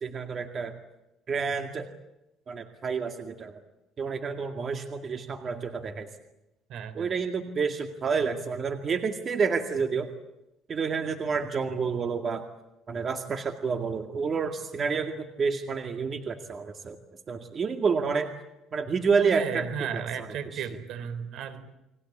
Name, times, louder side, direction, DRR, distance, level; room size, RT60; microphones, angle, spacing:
voice 1, 0.0-0.7 1.3-1.9 2.5-3.6 4.0-6.1 6.9-10.1 10.7-12.4 12.9-17.0 17.3-18.3 18.7-19.7 19.9-20.3 20.5-20.6, right 5 dB, 35° right, 7 dB, 2.1 m, -29 dB
voice 2, 6.7-7.2 19.2-21.8, right 7 dB, 65° right, 12 dB, 3.5 m, -35 dB
30.0 x 22.0 x 8.7 m, 0.95 s
cardioid pair, 140°, 0 cm